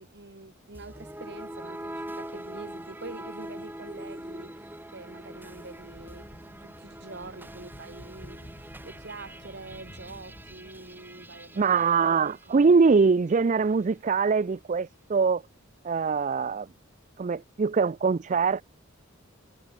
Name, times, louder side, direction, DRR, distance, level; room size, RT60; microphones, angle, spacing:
voice 1, 0.0-6.3 6.6-11.7 12.0-12.7, right 2 dB, 55° right, 1.8 m, -45 dB
sound 1, 0.7-13.1, right 1 dB, 10° right, 2.3 m, -43 dB
sound 2, 5.1-11.3, equal, 30° left, 2.9 m, -51 dB
voice 2, 11.6-15.4 15.8-16.7 17.2-18.6, right 5 dB, 35° right, 0.4 m, -23 dB
head